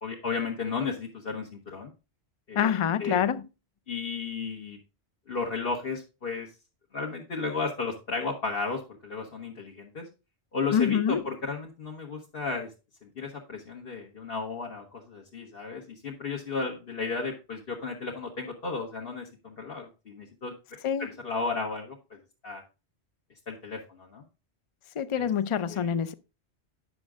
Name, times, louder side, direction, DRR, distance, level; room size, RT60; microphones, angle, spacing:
voice 1, 0.0-1.9 2.5-2.7 3.0-3.2 3.9-4.8 5.3-6.5 6.9-10.1 10.5-12.7 13.1-20.5 21.0-22.2 22.4-22.6 23.5-24.2 25.1-25.3 25.7-25.9, left 4 dB, 60° left, 1.5 m, -34 dB
voice 2, 2.6-3.5 10.7-11.3 20.8-21.1 25.0-26.1, left 8 dB, 40° left, 0.4 m, -26 dB
9.6 x 6.2 x 3.6 m
omnidirectional pair, 1.1 m